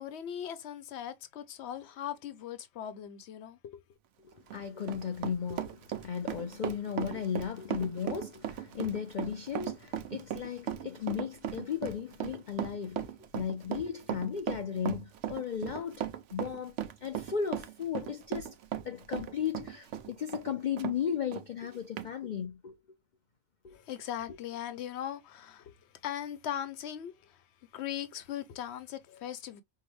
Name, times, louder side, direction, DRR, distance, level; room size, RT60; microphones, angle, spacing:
voice 1, 0.0-3.8 23.7-27.4 27.7-29.6, left 10 dB, 60° left, 0.9 m, -39 dB
voice 2, 4.2-16.0 16.3-16.7 17.0-18.6 18.8-22.8 23.6-23.8, left 7 dB, 85° left, 0.4 m, -35 dB
Run, 4.3-21.0 21.3-21.4 22.0-22.1, right 10 dB, 65° right, 0.9 m, -37 dB
5.6 x 2.2 x 3.1 m
omnidirectional pair, 1.5 m